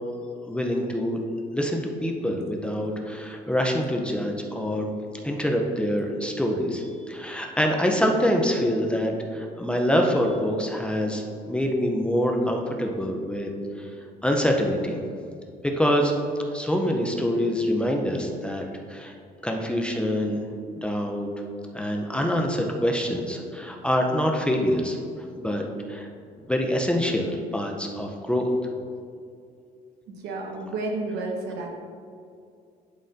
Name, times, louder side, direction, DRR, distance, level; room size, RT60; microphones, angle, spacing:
voice 1, 0.4-1.2 1.5-4.9 5.2-13.5 13.8-13.9 14.2-15.0 15.6-16.1 16.5-19.1 19.4-20.4 20.8-21.3 21.7-25.0 25.4-25.6 25.9-26.1 26.5-28.5, equal, 5° left, 1 dB, 0.6 m, -25 dB
voice 2, 30.2-31.8, right 2 dB, 80° right, 1 dB, 1.2 m, -31 dB
11.0 x 4.1 x 2.7 m, 2.4 s
cardioid pair, 110°, 17 cm